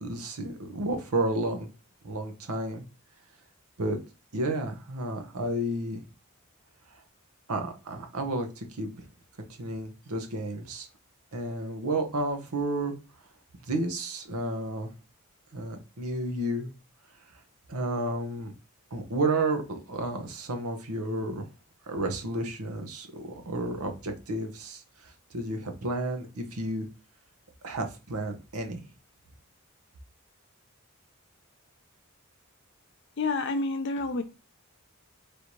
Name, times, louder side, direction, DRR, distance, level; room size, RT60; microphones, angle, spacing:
voice 1, 0.0-1.7 2.0-2.8 3.8-4.0 4.3-6.0 7.5-9.0 9.6-10.9 11.3-12.9 13.7-14.9 15.5-16.7 17.7-18.5 18.9-21.4 21.9-26.9 27.6-28.8, right 2 dB, 85° right, 0.9 m, -31 dB
voice 2, 33.2-34.2, left 3 dB, 55° left, 0.5 m, -28 dB
3.4 x 2.7 x 4.5 m
head